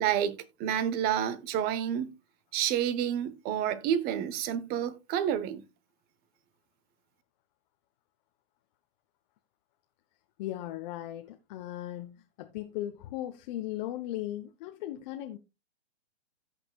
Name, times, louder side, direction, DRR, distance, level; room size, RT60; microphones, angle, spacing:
voice 1, 0.0-2.1 2.5-5.6, right 9 dB, 25° right, 1.0 m, -29 dB
voice 2, 10.4-15.4, left 14 dB, 40° left, 0.9 m, -37 dB
16.5 x 5.9 x 2.3 m
hypercardioid pair, 125°, 34 cm